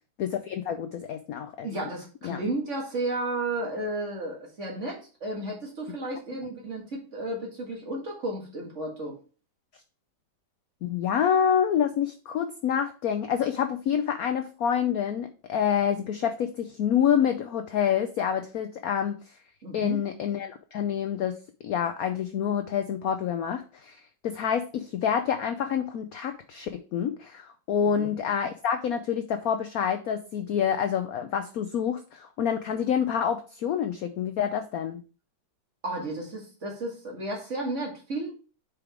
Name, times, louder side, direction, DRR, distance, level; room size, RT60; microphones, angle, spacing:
voice 1, 0.2-1.7 2.2-2.4 10.8-19.2 19.7-21.3 21.6-35.0, left 8 dB, 80° left, 8 dB, 0.8 m, -27 dB
voice 2, 1.6-9.2 19.6-20.0 27.8-28.1 35.8-38.3, right 2 dB, 40° right, -1 dB, 2.1 m, -33 dB
5.1 x 5.0 x 4.5 m, 0.36 s
omnidirectional pair, 2.1 m